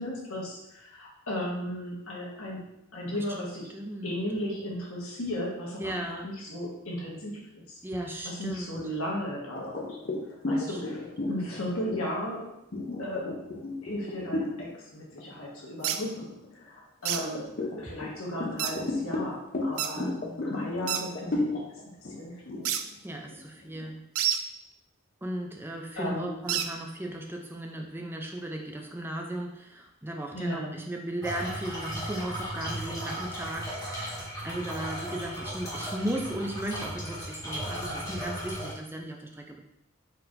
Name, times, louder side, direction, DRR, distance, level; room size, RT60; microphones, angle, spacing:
voice 1, 0.0-2.6 2.9-3.7 4.0-7.8 8.2-10.0 10.4-11.0 11.3-12.5 13.0-13.4 13.8-16.3 16.6-20.1 20.4-21.5 22.0-22.7 25.9-26.3 30.3-30.8, left 1 dB, 80° left, -3 dB, 1.3 m, -35 dB
voice 2, 3.7-4.2 5.8-6.3 7.8-8.8 10.5-11.6 20.0-20.5 23.0-24.0 25.2-39.6, right 1 dB, 10° right, 2 dB, 0.4 m, -36 dB
sound 1, 9.6-14.7 15.1-15.4 15.8-16.6 17.2-23.9, left 2 dB, 45° left, 0.7 m, -34 dB
sound 2, 15.8-16.0 17.0-17.2 18.6-18.7 19.8-19.9 20.9-21.0 22.6-22.8 24.2-24.4 26.5-26.7, right 10 dB, 85° right, 0.4 m, -28 dB
sound 3, 31.2-38.7, right 1 dB, 20° left, 1.6 m, -36 dB
4.3 x 4.2 x 2.6 m, 0.82 s
head